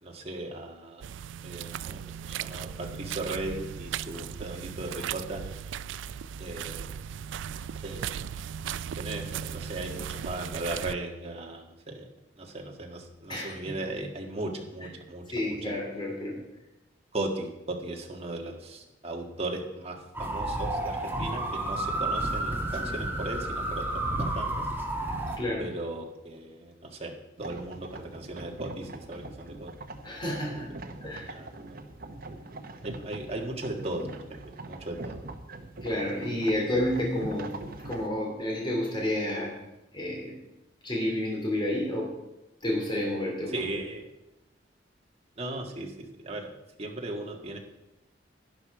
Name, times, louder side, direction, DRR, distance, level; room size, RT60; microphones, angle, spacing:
voice 1, 0.0-1.0 1.4-5.4 6.4-6.9 7.8-8.1 9.0-12.1 12.4-15.7 17.1-24.7 25.6-27.1 27.4-29.7 31.3-31.8 32.8-35.2 43.5-44.0 45.4-46.5 46.8-47.6, right 2 dB, 35° right, 1 dB, 1.6 m, -37 dB
sound 1, 1.0-10.9, right 8 dB, 85° right, 0.3 m, -37 dB
voice 2, 13.3-13.9 15.3-16.4 21.9-22.0 25.4-25.7 30.0-30.7 31.0-31.4 35.8-37.6 37.8-39.6 39.9-40.4 40.8-42.1 42.6-43.7, left 1 dB, 25° left, -2 dB, 2.9 m, -30 dB
sound 2, 20.1-25.4, right 1 dB, 10° right, 1.5 m, -31 dB
sound 3, 27.4-38.1, right 2 dB, 55° right, 1.0 m, -42 dB
11.5 x 10.0 x 4.8 m, 0.94 s
head